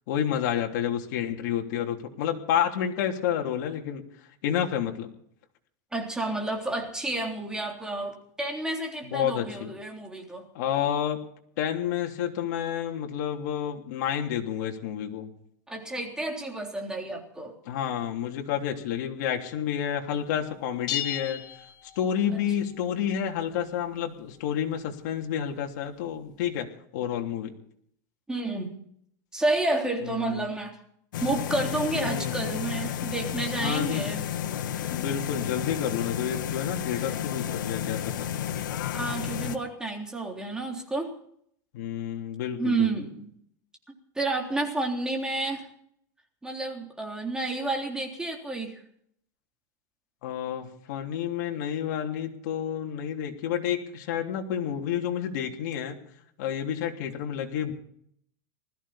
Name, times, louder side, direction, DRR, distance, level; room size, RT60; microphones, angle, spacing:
voice 1, 0.1-4.0 4.4-5.1 9.0-9.7 10.5-11.2 11.6-15.3 17.6-21.4 21.9-27.5 30.0-30.5 31.9-32.3 33.6-34.1 34.9-38.3 41.7-42.9 50.2-56.0 56.4-57.7, left 9 dB, 65° left, 2 dB, 3.3 m, -30 dB
voice 2, 5.9-10.5 15.7-17.5 28.3-28.8 29.3-30.8 31.2-34.2 38.9-41.1 42.6-43.3 44.2-45.7 46.4-48.8, right 2 dB, 5° right, 1 dB, 3.6 m, -30 dB
sound 1, 20.9-22.5, left 12 dB, 40° left, 1.3 m, -34 dB
sound 2, 31.1-39.6, left 9 dB, 90° left, 1.6 m, -32 dB
20.5 x 14.5 x 4.3 m, 0.67 s
supercardioid pair, 140°, 10 cm